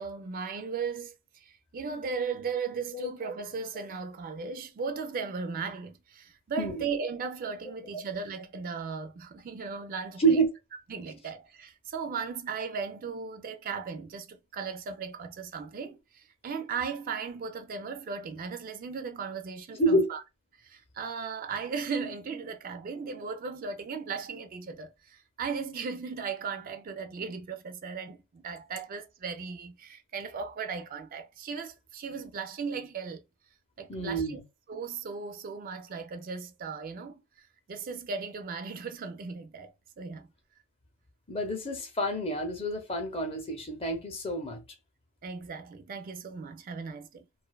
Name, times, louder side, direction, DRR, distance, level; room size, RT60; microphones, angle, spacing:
voice 1, 0.0-10.4 10.9-20.2 20.5-33.2 33.8-34.4 34.7-37.2 37.7-40.3 45.2-47.3, right 5 dB, 40° right, 0.4 m, -37 dB
voice 2, 10.2-10.5 19.8-20.1 33.9-34.4 41.3-44.6, right 2 dB, 30° left, 0.6 m, -28 dB
2.5 x 2.2 x 2.2 m
head